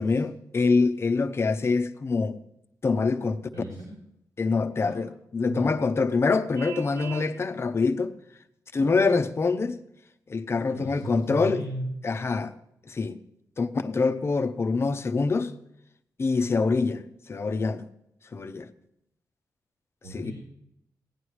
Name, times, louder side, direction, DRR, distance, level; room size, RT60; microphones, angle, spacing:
voice 1, 0.0-2.4 2.8-3.4 4.4-8.2 8.7-9.8 10.3-11.6 12.0-12.5 12.9-13.2 13.6-15.5 16.2-17.9 18.3-18.7 20.1-20.3, left 4 dB, 40° left, 0.7 m, -25 dB
voice 2, 3.5-3.9 4.8-4.9 5.5-5.7 10.7-11.9 20.0-20.3, right 1 dB, 90° right, 4.2 m, -36 dB
Vehicle horn car horn honking, 6.5-7.3, right 4 dB, 50° right, 0.7 m, -38 dB
17.5 x 9.5 x 3.2 m
cardioid pair, 75°, 7 cm